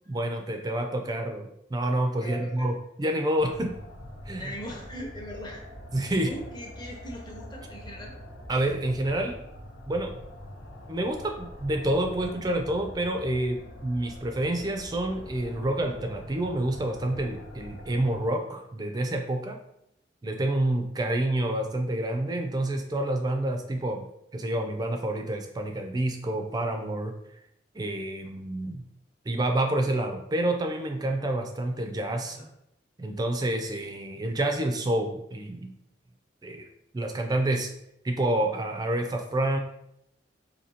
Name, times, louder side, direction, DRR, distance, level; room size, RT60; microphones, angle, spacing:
voice 1, 0.1-3.8 4.3-4.5 5.9-6.3 8.5-9.4 9.9-10.1 10.9-19.6 20.2-24.1 24.3-27.1 27.7-28.8 29.3-32.4 33.0-35.7 36.4-36.7 36.9-37.7 38.0-39.6, right 1 dB, 20° right, 4 dB, 0.3 m, -28 dB
voice 2, 2.2-2.7 4.4-5.6 6.1-8.2 32.2-32.5, equal, 25° left, -1 dB, 0.7 m, -40 dB
sound 1, 3.3-18.3, equal, 75° left, 0.8 m, -44 dB
4.2 x 2.7 x 2.7 m, 0.78 s
head